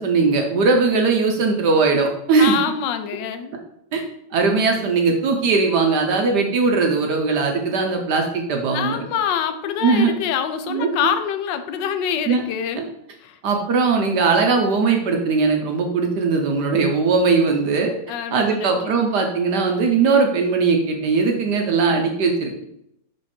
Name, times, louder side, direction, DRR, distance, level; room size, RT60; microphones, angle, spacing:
voice 1, 0.0-2.5 3.9-4.0 4.3-9.0 9.8-10.1 10.7-10.9 12.3-12.4 12.8-12.9 13.4-17.9 18.3-22.6, right 4 dB, 65° right, 3 dB, 1.3 m, -19 dB
voice 2, 2.4-3.5 8.7-12.8 13.2-13.4 18.1-19.0, left 8 dB, 70° left, 9 dB, 1.2 m, -25 dB
6.1 x 4.9 x 4.3 m, 0.78 s
omnidirectional pair, 2.2 m